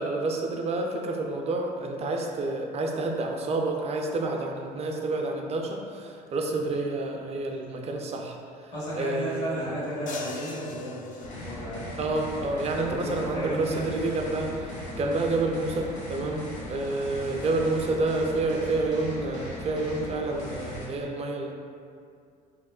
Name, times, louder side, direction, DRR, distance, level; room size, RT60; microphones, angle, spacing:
voice 1, 0.0-8.4 9.0-9.7 12.0-21.5, right 2 dB, 30° right, 1 dB, 0.3 m, -29 dB
voice 2, 8.7-12.2 12.5-13.9 14.9-15.0 17.4-17.6, equal, 80° left, -11 dB, 1.5 m, -34 dB
sound 1, 10.1-11.9, left 3 dB, 40° left, 0.4 m, -42 dB
sound 2, 11.2-20.9, equal, 60° left, 0.7 m, -39 dB
2.9 x 2.0 x 2.3 m, 2.3 s
hypercardioid pair, 65°, 21 cm